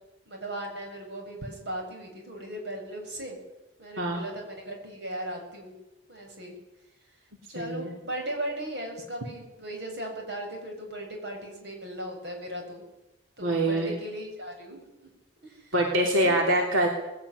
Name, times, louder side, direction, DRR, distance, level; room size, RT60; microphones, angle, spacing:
voice 1, 0.3-3.4 3.8-5.7 6.1-6.6 7.5-12.8 13.4-14.8 15.4-15.7 16.2-16.4, right 1 dB, 60° right, 1 dB, 7.3 m, -37 dB
voice 2, 7.5-8.0 13.4-13.9 15.7-16.9, right 1 dB, 90° right, 1 dB, 3.4 m, -24 dB
21.0 x 17.0 x 9.9 m, 0.97 s
head